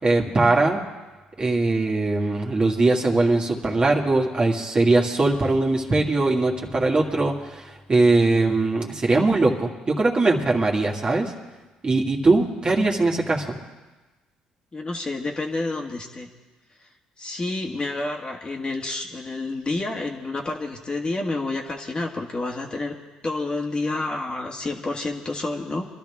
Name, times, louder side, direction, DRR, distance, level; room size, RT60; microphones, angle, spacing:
voice 1, 0.0-0.8 1.4-7.6 7.9-11.3 11.8-13.6, right 2 dB, 30° right, -1 dB, 2.2 m, -21 dB
voice 2, 14.7-16.3 17.2-23.0 23.2-25.9, left 2 dB, 30° left, 1 dB, 1.9 m, -29 dB
23.5 x 12.0 x 3.6 m, 1.2 s
supercardioid pair, 65°, 3 cm